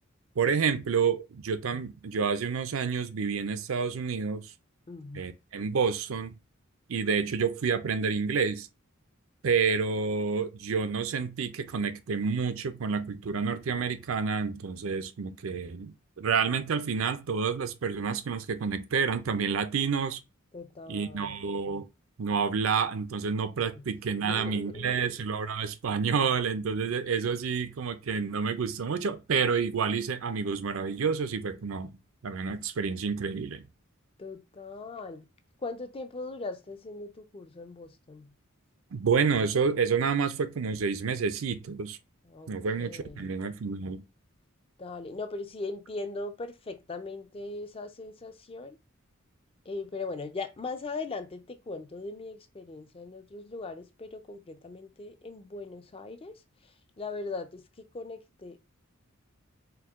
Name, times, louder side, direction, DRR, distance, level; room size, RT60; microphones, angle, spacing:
voice 1, 0.4-4.5 5.1-6.4 6.9-8.7 9.4-20.2 20.9-21.9 22.2-31.9 32.2-33.7 38.9-42.0 42.5-44.0, right 5 dB, 75° right, 0.5 m, -29 dB
voice 2, 4.9-5.3 20.5-21.4 23.7-23.9 24.2-25.3 34.2-35.3 35.6-38.3 42.3-43.3 44.8-48.8 49.7-56.3 57.0-58.6, left 3 dB, 25° left, 0.4 m, -39 dB
4.6 x 2.2 x 3.5 m
head